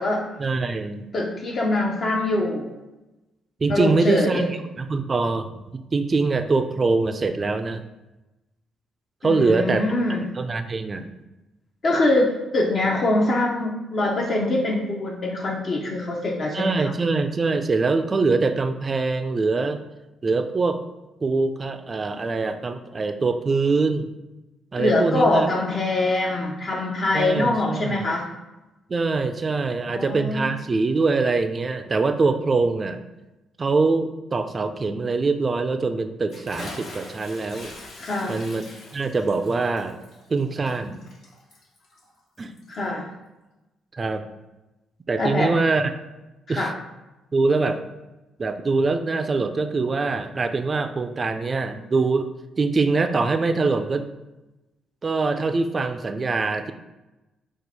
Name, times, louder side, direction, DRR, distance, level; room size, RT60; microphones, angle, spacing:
voice 1, 0.4-1.1 3.6-7.8 9.2-9.8 10.4-11.1 16.5-19.8 20.2-20.8 21.2-24.1 24.7-25.5 27.1-28.0 28.9-33.0 33.6-37.7 38.3-40.0 40.3-41.0 42.4-42.5 43.9-44.2 45.1-45.9 46.5-46.7 47.3-47.8 48.4-52.3 52.6-54.1 55.0-56.7, right 3 dB, 35° right, 8 dB, 0.3 m, -23 dB
voice 2, 1.1-2.7 3.7-4.4 9.2-10.2 11.8-16.8 24.8-28.3 29.8-30.5 38.0-38.4 42.7-43.1 45.2-45.5 46.5-46.7, left 2 dB, 50° left, -2 dB, 0.6 m, -23 dB
Bathtub (filling or washing) / Splash splatter, 36.3-42.9, left 2 dB, 70° left, 1.2 m, -43 dB
4.5 x 2.4 x 4.0 m, 1.0 s
cardioid pair, 90°, 0 cm